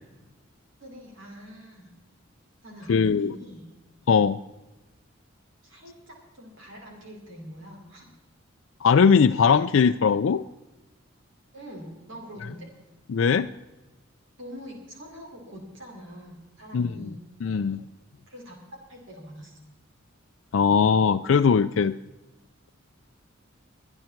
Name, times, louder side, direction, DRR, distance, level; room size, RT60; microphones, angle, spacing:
voice 1, 0.8-1.9 2.6-3.7 5.6-8.1 11.5-12.7 14.4-17.2 18.3-19.6, equal, 65° right, -1 dB, 5.4 m, -44 dB
voice 2, 2.9-3.3 4.1-4.4 8.8-10.4 13.1-13.5 16.7-17.1 17.4-17.8 20.5-22.0, left 6 dB, 65° left, 8 dB, 0.4 m, -20 dB
23.0 x 11.0 x 4.5 m, 1.1 s
head